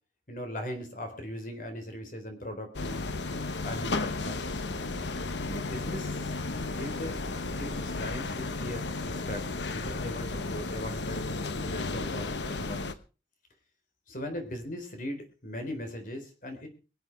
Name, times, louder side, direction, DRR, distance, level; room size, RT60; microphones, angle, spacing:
voice 1, 0.3-3.1 3.6-4.4 5.5-6.3 6.7-7.2 7.5-9.5 9.7-12.9 14.1-16.7, equal, 45° left, 5 dB, 4.0 m, -39 dB
sound 1, 2.7-12.9, left 3 dB, 80° left, 1.1 m, -34 dB
23.5 x 8.1 x 4.7 m, 0.34 s
head